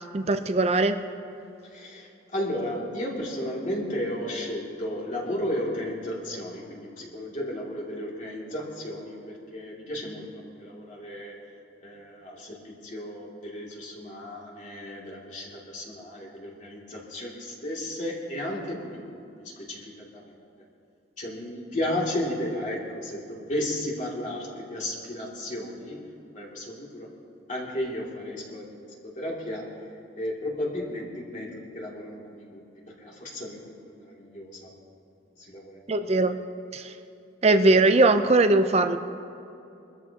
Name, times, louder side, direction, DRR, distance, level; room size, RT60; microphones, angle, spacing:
voice 1, 0.1-1.0 35.9-36.4 36.7-36.8 37.4-39.0, right 2 dB, 35° right, 9 dB, 0.5 m, -20 dB
voice 2, 1.6-10.3 10.6-11.4 11.8-19.1 19.4-20.2 21.2-26.0 26.3-27.2 27.5-28.8 29.0-29.8 30.1-34.7 35.4-35.8 36.2-36.3, left 1 dB, 45° left, -3 dB, 2.7 m, -34 dB
23.5 x 13.5 x 2.9 m, 2.7 s
head